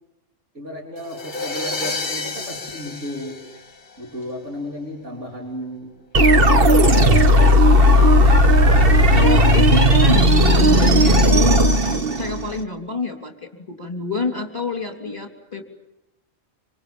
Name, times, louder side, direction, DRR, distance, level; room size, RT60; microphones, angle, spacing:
voice 1, 0.5-3.4 4.0-5.9 6.6-8.4, left 1 dB, 70° right, -2 dB, 4.0 m, -34 dB
sound 1, 1.0-4.2, left 3 dB, 40° left, 1.5 m, -30 dB
sound 2, 6.1-12.6, equal, 50° right, 1.6 m, -14 dB
voice 2, 9.1-11.6 12.2-15.6, left 3 dB, 25° left, 3 dB, 3.4 m, -27 dB
26.5 x 26.0 x 7.2 m, 0.91 s
omnidirectional pair, 1.3 m